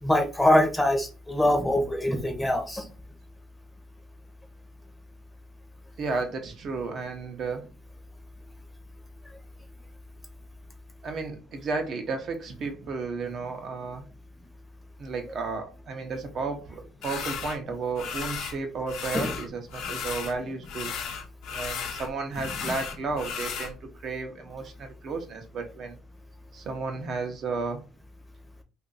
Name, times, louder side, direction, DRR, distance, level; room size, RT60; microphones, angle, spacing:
voice 1, 0.0-2.8 19.1-19.3, left 1 dB, 5° left, 0.7 m, -23 dB
voice 2, 6.0-7.6 11.0-14.0 15.0-20.9 21.5-23.8 24.0-26.0 26.5-27.9, right 4 dB, 45° right, 0.7 m, -33 dB
sound 1, 17.0-17.6 18.0-18.6 18.9-20.4 20.6-23.7, left 6 dB, 65° left, 0.8 m, -35 dB
2.6 x 2.5 x 3.9 m
cardioid pair, 120°, 0 cm